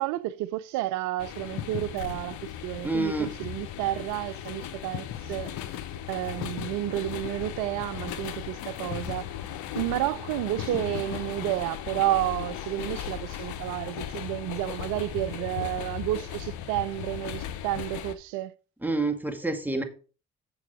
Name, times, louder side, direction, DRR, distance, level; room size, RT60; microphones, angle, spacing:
voice 1, 0.0-5.5 6.1-9.3 9.7-18.5, right 15 dB, 80° right, 0.5 m, -31 dB
sound 1, 1.2-18.2, left 10 dB, 80° left, 0.9 m, -36 dB
voice 2, 2.8-3.3 18.8-19.8, right 2 dB, 5° right, 2.1 m, -27 dB
7.0 x 7.0 x 4.9 m
hypercardioid pair, 50°, 29 cm